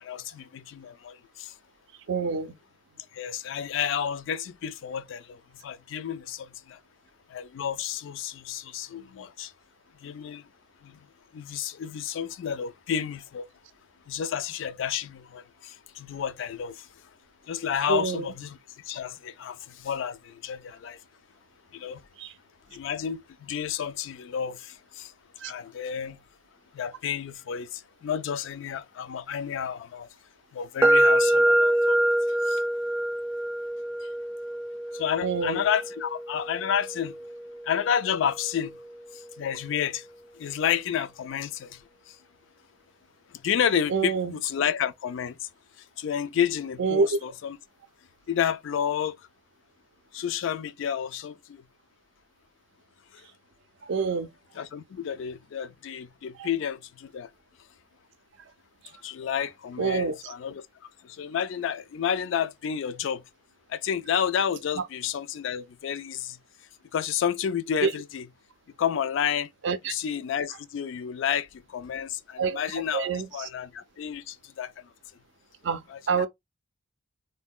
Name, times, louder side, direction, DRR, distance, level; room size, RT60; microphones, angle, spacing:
voice 1, 0.0-1.5 3.1-6.8 7.3-9.5 10.0-10.4 10.8-11.0 11.3-13.5 14.1-16.9 17.5-18.6 18.9-21.0 21.7-22.0 22.7-25.1 25.4-26.2 26.7-30.1 30.5-32.0 32.5-32.6 34.9-37.1 37.6-38.7 39.4-40.1 40.4-41.8 43.4-45.4 46.0-47.6 48.3-49.2 50.1-51.6 54.6-57.3 59.0-60.6 61.0-63.2 63.7-66.4 66.9-68.3 68.8-69.5 69.9-74.7 75.9-76.3, left 8 dB, 65° left, 0.3 m, -30 dB
voice 2, 2.1-2.5 17.9-18.3 22.2-22.3 25.4-25.5 35.2-35.6 43.9-44.3 46.8-47.2 53.8-54.3 56.4-56.5 59.8-60.3 67.8-67.9 69.6-69.9 72.4-72.6 72.9-73.5 75.6-76.3, right 5 dB, 60° right, 0.4 m, -27 dB
sound 1, 30.8-38.7, right 1 dB, 10° right, 0.5 m, -26 dB
3.6 x 2.1 x 2.3 m
head